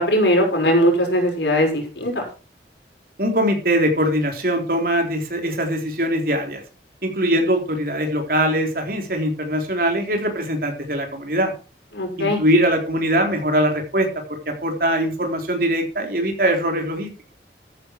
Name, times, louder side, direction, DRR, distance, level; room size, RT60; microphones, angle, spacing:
voice 1, 0.0-2.2 11.9-12.4, equal, 80° left, 1 dB, 6.0 m, -19 dB
voice 2, 3.2-6.6 7.0-11.5 12.2-17.1, equal, 55° right, 3 dB, 3.6 m, -22 dB
14.0 x 9.9 x 4.6 m, 0.34 s
head